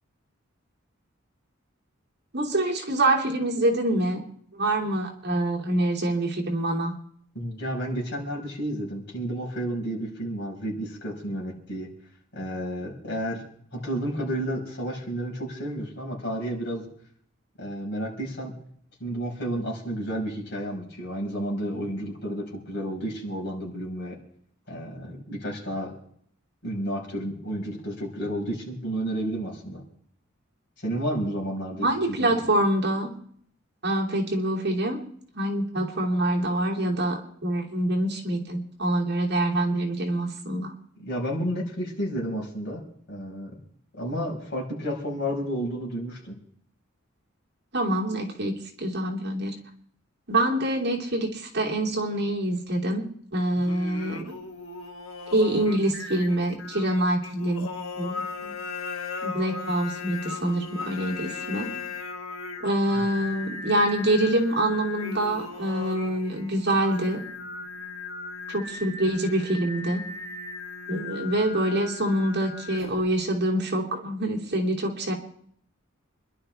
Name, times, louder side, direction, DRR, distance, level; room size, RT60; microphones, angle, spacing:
voice 1, 2.3-4.2 4.5-7.0 31.8-33.1 33.8-35.0 35.3-40.7 47.7-49.5 50.3-54.2 55.3-57.7 58.0-58.5 59.2-61.7 62.6-67.2 68.5-70.0 70.9-75.1, right 1 dB, 55° right, -1 dB, 2.9 m, -25 dB
voice 2, 7.3-11.9 12.3-13.4 13.7-16.8 17.6-18.5 19.0-24.2 24.7-25.9 26.6-29.8 30.8-32.4 41.0-42.8 43.1-43.5 44.0-46.4 62.9-63.1, equal, 55° left, -2 dB, 5.2 m, -31 dB
Singing, 53.6-73.2, left 4 dB, 75° left, 1.4 m, -38 dB
27.5 x 11.5 x 3.4 m, 0.64 s
head